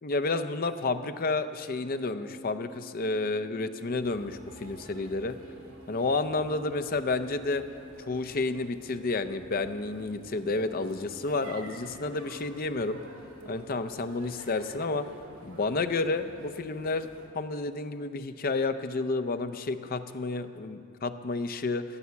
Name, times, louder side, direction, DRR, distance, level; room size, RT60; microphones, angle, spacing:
voice 1, 0.0-5.4 5.9-7.6 8.1-13.0 13.5-15.1 15.4-17.1 17.3-21.8, left 3 dB, 40° left, 10 dB, 0.5 m, -30 dB
sound 1, 1.9-14.4 14.7-14.8, right 1 dB, 15° right, 3.6 m, -52 dB
sound 2, 4.0-17.3, right 2 dB, 75° right, 2.3 m, -50 dB
14.0 x 8.4 x 7.0 m, 2.7 s
head